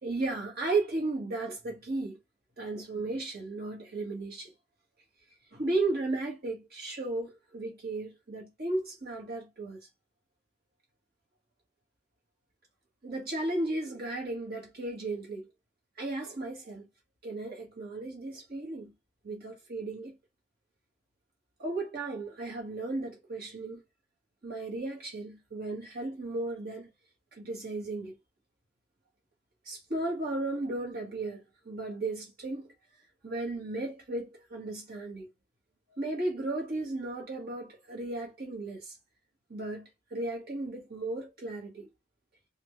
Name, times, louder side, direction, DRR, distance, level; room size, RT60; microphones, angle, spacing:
voice 1, 0.0-2.2 2.6-4.5 5.5-9.8 13.0-15.5 16.0-16.9 17.2-18.9 19.2-20.2 21.6-23.8 24.4-26.9 27.3-28.2 29.7-32.7 33.2-35.3 35.9-39.0 39.5-41.9, right 2 dB, 50° right, 1.9 m, -35 dB
4.1 x 2.7 x 3.2 m
head